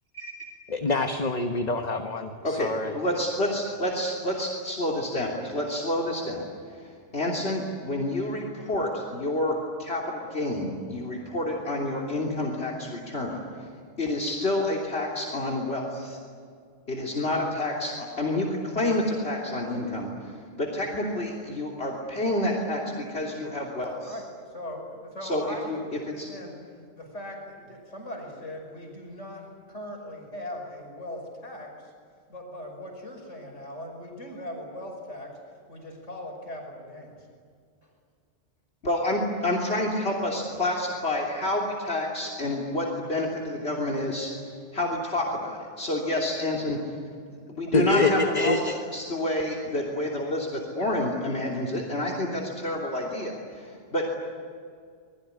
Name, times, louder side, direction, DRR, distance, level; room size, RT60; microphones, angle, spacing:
voice 1, 0.7-2.9 47.7-48.7, left 3 dB, 35° left, 5 dB, 1.4 m, -25 dB
voice 2, 2.4-13.7 14.0-16.2 16.9-24.2 25.2-25.8 26.2-26.3 38.8-44.3 44.7-47.0 47.3-48.5 48.9-54.1, left 1 dB, 60° left, 1 dB, 3.4 m, -29 dB
voice 3, 24.0-26.6 26.9-31.9 32.3-35.4 35.7-37.2, left 1 dB, 75° left, 1 dB, 5.8 m, -40 dB
27.0 x 21.0 x 9.8 m, 2.2 s
omnidirectional pair, 1.2 m